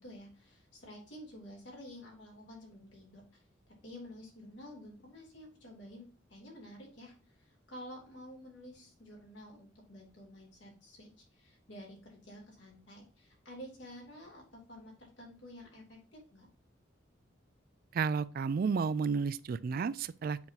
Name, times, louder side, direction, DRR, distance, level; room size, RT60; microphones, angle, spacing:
voice 1, 0.0-3.4 3.8-16.5, equal, 70° left, 3.1 m, -51 dB
voice 2, 17.9-20.4, right 5 dB, 50° right, 0.3 m, -32 dB
7.6 x 5.8 x 2.8 m
head